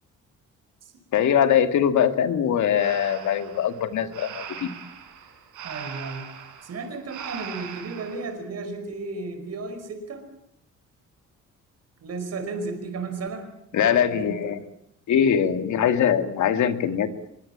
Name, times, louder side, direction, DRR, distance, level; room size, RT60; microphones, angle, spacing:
voice 1, 1.1-4.7 13.7-14.6 15.1-17.3, left 8 dB, 70° left, 8 dB, 2.4 m, -22 dB
Breathing, 2.8-8.3, right 8 dB, 85° right, 5.1 m, -40 dB
voice 2, 5.6-6.3 6.6-10.3 12.0-14.6, right 3 dB, 55° right, 7 dB, 5.2 m, -34 dB
24.0 x 23.0 x 8.8 m, 0.77 s
cardioid pair, 90°, 30 cm